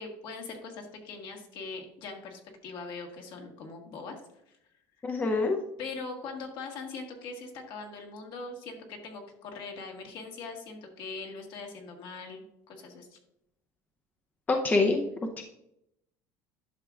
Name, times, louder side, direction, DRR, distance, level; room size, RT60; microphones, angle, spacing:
voice 1, 0.0-4.2 4.5-4.6 5.8-13.2, left 4 dB, 60° left, 2 dB, 1.7 m, -41 dB
voice 2, 5.0-5.6 14.5-15.0 15.4-15.5, left 3 dB, 20° left, 3 dB, 0.6 m, -25 dB
11.0 x 5.9 x 2.4 m, 0.80 s
cardioid pair, 125°, 9 cm